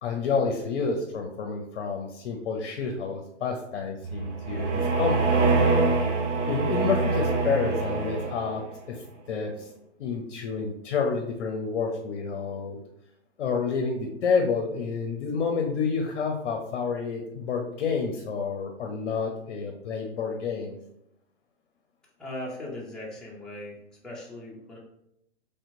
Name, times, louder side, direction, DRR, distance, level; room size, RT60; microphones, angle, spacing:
voice 1, 0.0-5.9 6.4-9.7 10.0-12.8 13.4-20.8, left 5 dB, 60° left, 4 dB, 0.6 m, -29 dB
sound 1, 4.0-8.7, right 3 dB, 80° right, 0.7 m, -25 dB
voice 2, 22.2-23.8 24.0-24.8, left 1 dB, ahead, -6 dB, 0.5 m, -38 dB
3.2 x 2.8 x 2.6 m, 0.78 s
hypercardioid pair, 125°, 35 cm